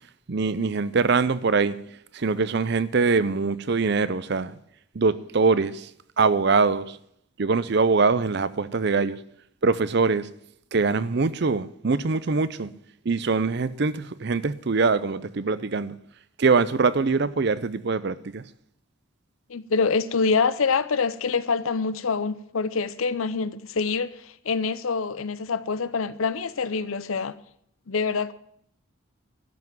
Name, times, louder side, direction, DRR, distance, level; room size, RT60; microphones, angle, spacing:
voice 1, 0.3-1.8 2.1-4.6 4.9-5.9 6.2-7.0 7.4-9.2 9.6-10.3 10.7-12.7 13.0-15.9 16.4-18.4, right 4 dB, 50° right, 0.5 m, -23 dB
voice 2, 19.5-27.3 27.9-28.3, left 4 dB, 75° left, 0.6 m, -25 dB
12.5 x 5.9 x 9.1 m
head